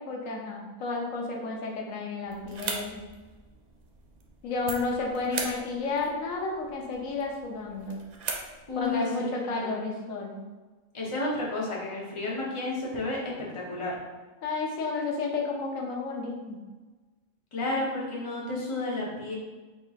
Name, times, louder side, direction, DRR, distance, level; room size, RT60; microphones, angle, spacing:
voice 1, 0.0-3.0 4.4-8.0 8.8-10.4 14.4-16.6, left 3 dB, 85° left, -1 dB, 1.1 m, -32 dB
sound 1, 2.2-9.0, right 4 dB, 85° right, 0.3 m, -40 dB
voice 2, 8.7-9.8 10.9-14.0 17.5-19.4, left 2 dB, 30° left, -5 dB, 0.8 m, -32 dB
3.9 x 3.6 x 2.4 m, 1.3 s
omnidirectional pair, 1.4 m